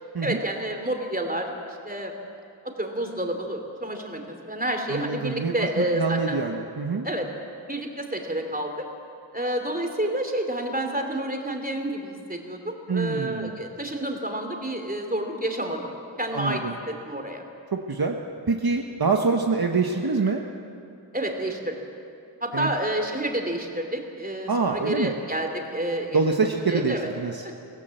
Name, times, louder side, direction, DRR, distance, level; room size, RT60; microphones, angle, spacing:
voice 1, 0.2-1.5 1.8-2.1 2.6-6.4 7.0-7.3 7.7-8.8 9.3-15.9 16.2-17.4 21.1-21.7 22.4-27.1 27.4-27.5, right 1 dB, 20° right, 3 dB, 3.1 m, -29 dB
voice 2, 4.9-7.1 12.9-13.6 16.3-16.8 17.7-18.2 18.5-20.4 22.5-22.7 24.5-25.1 26.1-27.4, right 4 dB, 55° right, 2 dB, 1.3 m, -25 dB
24.5 x 17.0 x 7.8 m, 2.6 s
wide cardioid pair, 70°, 45 cm